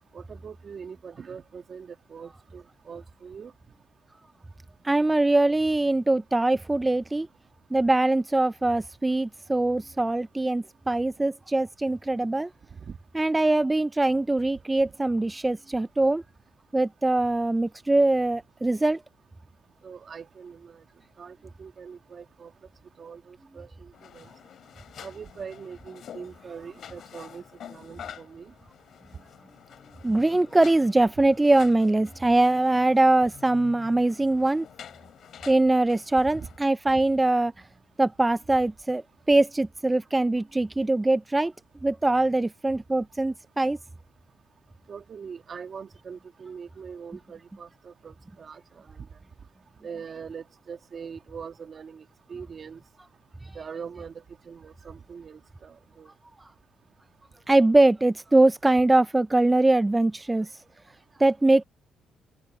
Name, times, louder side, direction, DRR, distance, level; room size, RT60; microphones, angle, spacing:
voice 1, 0.1-3.5 12.8-13.0 19.8-20.8 21.2-22.5 23.0-24.3 25.0-27.4 27.7-28.5 36.4-36.5 36.9-37.0 44.9-48.6 49.8-52.0 52.3-52.8 53.6-56.1, right 6 dB, 45° right, 1.8 m, -42 dB
voice 2, 4.8-7.3 7.7-12.5 13.2-16.2 16.7-19.0 30.0-34.7 35.5-37.7 38.0-41.5 41.8-43.8 53.4-53.5 57.5-60.6 61.2-61.6, right 2 dB, 15° right, 0.3 m, -22 dB
sound 1, 23.9-36.6, left 9 dB, 65° left, 2.8 m, -48 dB
open air
cardioid pair, 90°, 0 cm